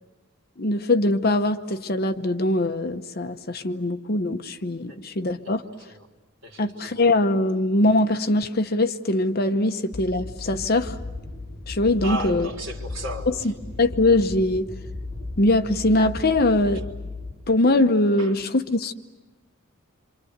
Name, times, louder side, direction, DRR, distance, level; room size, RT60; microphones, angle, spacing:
voice 1, 0.6-5.6 6.6-10.9 11.7-12.5 13.8-14.7 15.4-16.8 17.5-18.9, left 2 dB, 45° left, 0.9 m, -22 dB
voice 2, 5.4-6.1 6.4-7.1 12.0-13.5 18.2-18.4, right 1 dB, 60° right, 3.9 m, -36 dB
sound 1, 9.9-17.3, left 2 dB, 25° left, 6.4 m, -36 dB
27.5 x 25.5 x 8.1 m
head